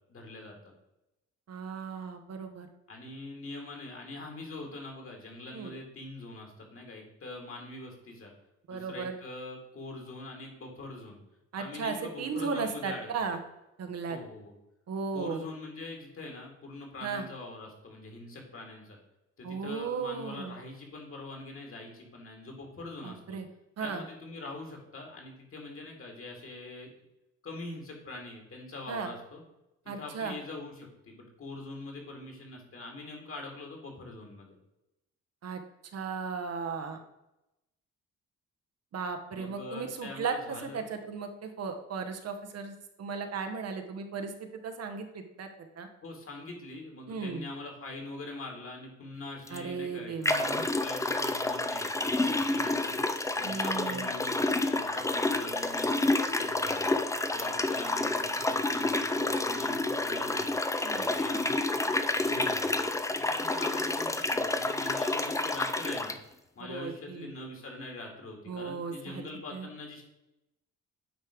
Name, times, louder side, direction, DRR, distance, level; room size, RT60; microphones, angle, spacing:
voice 1, 0.1-0.6 2.9-8.3 8.7-11.2 11.5-13.3 14.1-14.5 15.1-19.0 19.4-23.4 23.8-26.9 27.4-29.4 30.0-34.6 39.3-40.8 46.0-53.0 53.3-57.0 57.3-60.5 60.9-62.8 63.2-66.2 66.6-70.0, left 2 dB, 45° left, 2 dB, 2.2 m, -43 dB
voice 2, 1.5-2.7 5.5-5.7 8.7-9.1 11.5-13.4 13.8-14.2 14.9-15.4 17.0-17.2 19.4-20.5 23.0-23.4 23.8-24.0 28.9-29.1 29.9-30.4 35.4-35.6 35.9-37.0 38.9-45.9 47.1-47.4 49.5-50.6 53.4-54.1 60.8-61.1 66.7-67.3 68.5-69.3 69.5-69.7, right 5 dB, 55° right, 6 dB, 1.0 m, -36 dB
sound 1, 49.5-49.6 50.2-66.2, left 2 dB, 10° left, 0.5 m, -29 dB
9.1 x 3.2 x 5.0 m, 0.92 s
cardioid pair, 90°, 30 cm